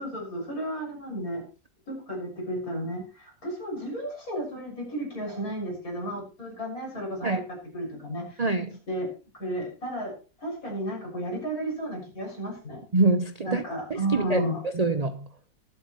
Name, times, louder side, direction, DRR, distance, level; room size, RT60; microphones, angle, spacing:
voice 1, 0.0-1.4 1.9-8.4 8.9-9.1 9.4-10.1 10.4-12.8 13.4-14.6, right 1 dB, 50° left, 7.1 m, -33 dB
voice 2, 8.4-8.8 12.9-13.6 13.9-14.4 14.7-15.3, right 3 dB, 35° right, 0.6 m, -25 dB
24.0 x 8.5 x 3.1 m
omnidirectional pair, 1.9 m